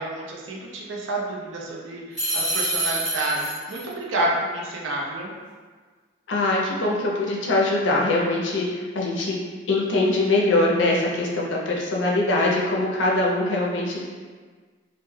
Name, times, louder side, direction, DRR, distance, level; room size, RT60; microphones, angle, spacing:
voice 1, 0.0-5.3, right 1 dB, 75° right, -2 dB, 0.5 m, -29 dB
sound 1, 2.1-3.9, right 1 dB, 5° right, 0.9 m, -26 dB
voice 2, 6.3-9.4 9.7-14.1, left 2 dB, 70° left, -3 dB, 0.5 m, -22 dB
2.2 x 2.1 x 3.1 m, 1.5 s
head